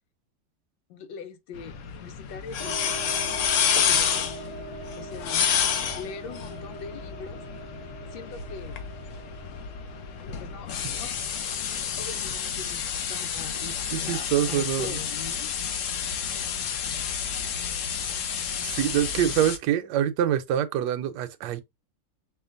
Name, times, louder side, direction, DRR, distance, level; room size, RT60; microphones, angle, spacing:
voice 1, 0.9-2.8 3.2-4.3 5.0-5.5 5.9-7.4 8.1-8.8 10.2-11.4 12.0-12.8 13.1-15.6 19.2-19.4, left 6 dB, 90° left, 1.4 m, -42 dB
sound 1, 1.5-19.6, left 7 dB, 75° left, 0.7 m, -30 dB
sound 2, 2.6-12.1, right 2 dB, 55° left, 1.4 m, -42 dB
voice 2, 13.9-15.0 18.6-21.6, right 11 dB, 75° right, 1.1 m, -25 dB
5.0 x 2.5 x 2.5 m
omnidirectional pair, 2.0 m